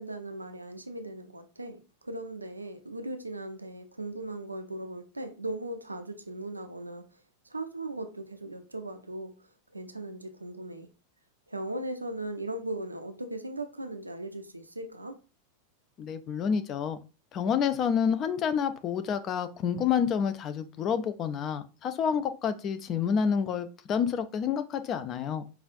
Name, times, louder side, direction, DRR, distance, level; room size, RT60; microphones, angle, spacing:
voice 1, 0.0-7.1 7.4-10.9 11.5-15.2, right 1 dB, 85° right, 0.5 m, -38 dB
voice 2, 16.0-17.0 17.3-25.4, left 7 dB, 30° left, 0.4 m, -28 dB
4.9 x 2.4 x 2.5 m
figure-of-eight pair, 90°, 0 cm